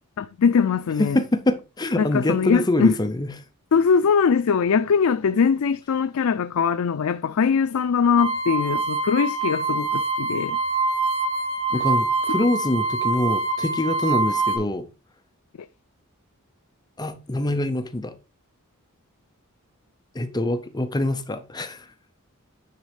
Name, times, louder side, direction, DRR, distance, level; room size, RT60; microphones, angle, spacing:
voice 1, 0.2-1.2 2.0-2.9 3.7-10.6 11.7-11.8, left 6 dB, 70° left, 0.4 m, -21 dB
voice 2, 1.0-3.3 11.7-14.9 17.0-18.2 20.1-21.8, left 1 dB, 20° left, 0.7 m, -25 dB
sound 1, 8.2-14.6, right 3 dB, 80° right, 4.8 m, -25 dB
9.6 x 4.1 x 4.9 m
head